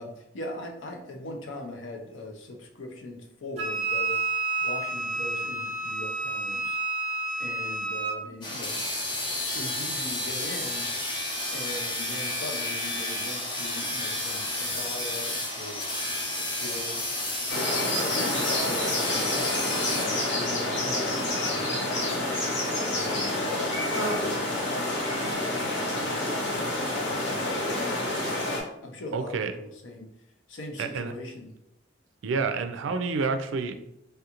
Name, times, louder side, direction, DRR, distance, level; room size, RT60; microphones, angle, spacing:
voice 1, 0.0-4.2 4.6-6.8 7.4-8.8 9.5-10.9 11.5-15.9 16.4-17.0 17.9-19.5 19.9-22.2 22.8-26.3 26.9-28.0 28.8-30.1 30.5-31.5, left 1 dB, 90° left, 3 dB, 0.6 m, -40 dB
Wind instrument woodwind instrument, 3.6-8.2, right 3 dB, 35° right, 0.5 m, -30 dB
sound 1, 8.4-20.4, left 1 dB, 25° left, 0.6 m, -31 dB
sound 2, 17.5-28.6, left 1 dB, 65° left, 0.8 m, -28 dB
voice 2, 29.1-29.5 30.8-31.1 32.2-33.7, right 4 dB, 85° right, 8 dB, 0.3 m, -28 dB
3.3 x 2.4 x 2.9 m, 0.80 s
head